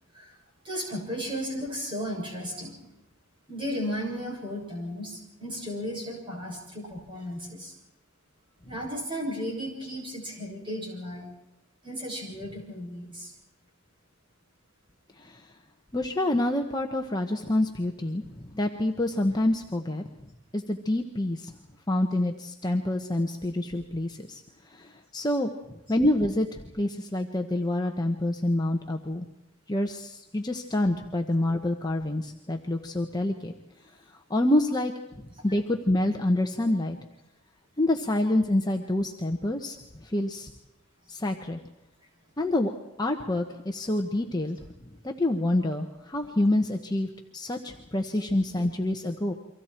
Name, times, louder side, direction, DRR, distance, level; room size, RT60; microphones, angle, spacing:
voice 1, 0.6-2.8 3.5-7.7 8.6-11.3 11.8-13.3, equal, 25° right, -1 dB, 7.1 m, -34 dB
voice 2, 15.2-15.5 15.9-21.5 21.9-25.5 25.9-29.2 29.7-33.5 34.3-37.0 37.8-39.8 40.0-40.5 41.1-41.6 42.4-42.7 43.0-49.3, left 1 dB, 20° left, 3 dB, 1.1 m, -27 dB
30.0 x 24.5 x 4.5 m, 0.91 s
head